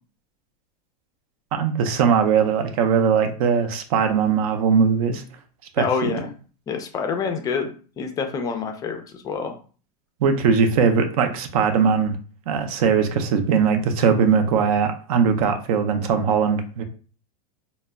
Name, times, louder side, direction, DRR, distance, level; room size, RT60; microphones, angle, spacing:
voice 1, 1.5-5.2 5.8-6.2 10.2-12.1 12.5-16.8, right 6 dB, 70° right, 7 dB, 0.5 m, -20 dB
voice 2, 5.8-6.3 6.7-9.6, left 5 dB, 20° left, 5 dB, 0.3 m, -27 dB
2.1 x 2.1 x 3.5 m, 0.40 s
supercardioid pair, 140°, 20 cm